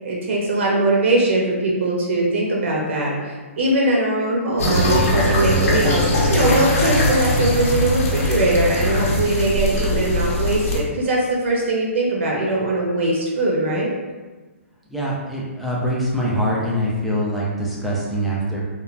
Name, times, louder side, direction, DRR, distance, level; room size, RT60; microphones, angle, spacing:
voice 1, 0.0-3.2 3.6-6.0 6.3-13.9, right 2 dB, 60° right, -2 dB, 0.6 m, -21 dB
sound 1, 4.6-10.8, left 1 dB, 85° left, 0.8 m, -20 dB
voice 2, 14.9-18.6, equal, ahead, -6 dB, 0.3 m, -23 dB
3.0 x 2.1 x 2.4 m, 1.3 s
hypercardioid pair, 160°, 8 cm